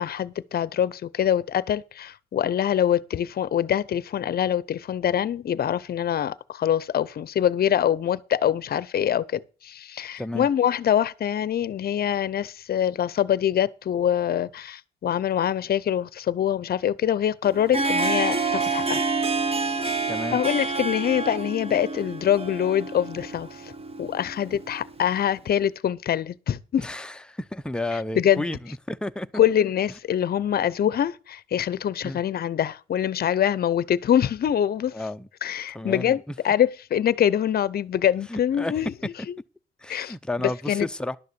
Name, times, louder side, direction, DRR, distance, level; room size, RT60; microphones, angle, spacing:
voice 1, 0.0-19.0 20.3-23.7 24.0-26.8 28.2-28.5 29.3-34.9 35.4-38.9 39.3-39.4 39.9-40.1 40.7-40.9, left 10 dB, 50° left, 0.7 m, -24 dB
Harp, 17.4-25.2, right 3 dB, 30° right, 1.2 m, -28 dB
voice 2, 20.1-20.4 26.8-29.3 32.0-32.2 34.9-35.3 35.7-36.4 38.3-38.7 39.8-41.2, left 1 dB, 5° left, 0.6 m, -32 dB
11.5 x 6.6 x 6.7 m
cardioid pair, 90°, 20 cm